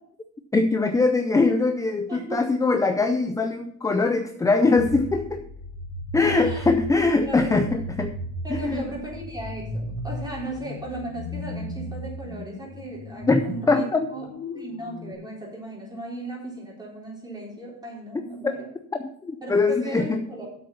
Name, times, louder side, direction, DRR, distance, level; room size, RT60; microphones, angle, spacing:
voice 1, 0.5-5.4 6.1-8.1 8.5-8.9 13.3-14.1 18.4-18.5 19.0-20.2, left 3 dB, 10° left, 7 dB, 0.3 m, -22 dB
voice 2, 2.1-2.4 6.3-6.7 7.2-7.8 8.4-13.9 14.1-14.3 14.5-18.7 19.4-20.4, right 2 dB, 10° right, -3 dB, 3.8 m, -36 dB
sound 1, 4.8-15.1, equal, 35° left, 1.6 m, -36 dB
8.0 x 6.6 x 6.9 m, 0.69 s
cardioid pair, 135°, 46 cm